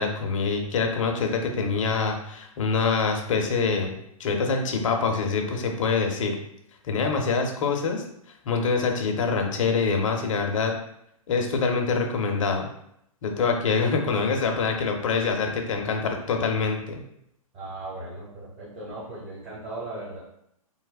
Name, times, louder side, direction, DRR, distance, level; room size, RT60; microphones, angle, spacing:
voice 1, 0.0-6.4 6.8-8.0 8.4-10.7 11.3-12.7 13.2-17.0, left 4 dB, 60° left, 3 dB, 0.6 m, -25 dB
voice 2, 7.0-7.3 17.5-20.2, right 2 dB, 35° right, -9 dB, 1.2 m, -37 dB
3.3 x 2.1 x 2.3 m, 0.75 s
hypercardioid pair, 125°, 18 cm